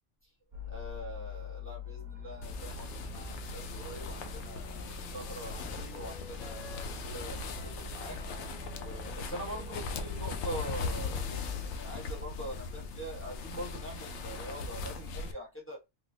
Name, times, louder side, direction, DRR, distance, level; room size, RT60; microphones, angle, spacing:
sound 1, 0.5-11.7, left 4 dB, 40° right, 0.6 m, -44 dB
voice 1, 0.6-8.2 8.7-15.8, right 1 dB, 10° left, 1.2 m, -44 dB
sound 2, 2.4-15.3, left 4 dB, 70° left, 0.8 m, -39 dB
Wind instrument woodwind instrument, 3.8-7.8 8.1-12.0, left 4 dB, 35° left, 1.0 m, -56 dB
3.4 x 2.5 x 2.7 m
omnidirectional pair, 1.2 m